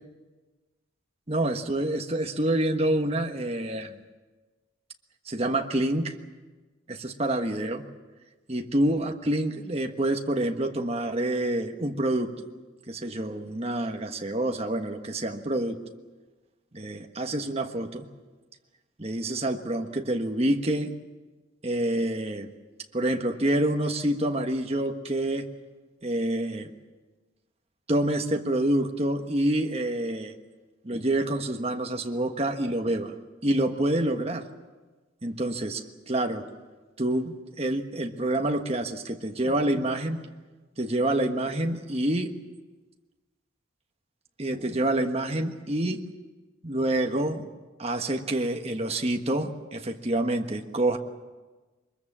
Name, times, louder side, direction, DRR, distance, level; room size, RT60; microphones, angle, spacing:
voice 1, 1.3-4.0 5.3-6.1 6.9-7.8 8.5-12.3 12.9-15.8 16.7-18.1 19.0-20.9 21.6-22.5 22.9-25.5 26.0-26.7 27.9-30.3 30.8-33.1 33.4-34.4 35.2-36.4 37.0-40.2 40.8-42.3 44.4-46.0 46.6-47.5 47.8-51.0, right 1 dB, 30° right, 4 dB, 1.3 m, -27 dB
22.5 x 21.5 x 7.4 m, 1.3 s
head